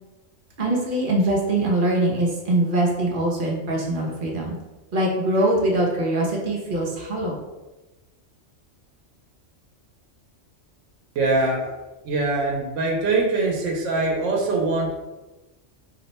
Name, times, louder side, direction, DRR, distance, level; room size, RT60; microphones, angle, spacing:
voice 1, 0.6-4.6 4.9-7.3, right 1 dB, 55° right, -2 dB, 0.7 m, -23 dB
voice 2, 11.2-11.7 12.0-14.9, right 3 dB, 85° right, -1 dB, 0.9 m, -23 dB
2.5 x 2.1 x 4.0 m, 1.1 s
omnidirectional pair, 1.3 m